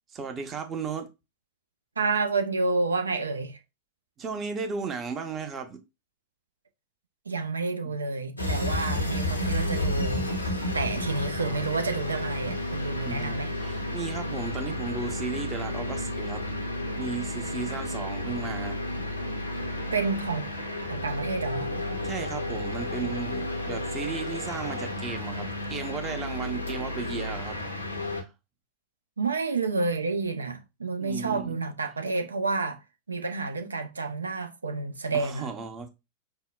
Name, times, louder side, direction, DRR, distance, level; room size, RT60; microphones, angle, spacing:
voice 1, 0.1-1.1 4.2-5.8 13.0-16.4 17.0-18.8 22.0-27.6 28.1-28.3 31.0-31.6 35.1-35.9, right 5 dB, 25° right, 0.7 m, -35 dB
voice 2, 2.0-3.6 7.3-10.3 10.7-13.5 19.9-20.5 20.9-21.7 29.2-32.8 33.1-35.5, right 3 dB, 75° right, 0.5 m, -29 dB
sound 1, 8.4-28.2, left 1 dB, 85° left, 0.7 m, -32 dB
5.4 x 2.1 x 2.2 m
figure-of-eight pair, 90°, 0 cm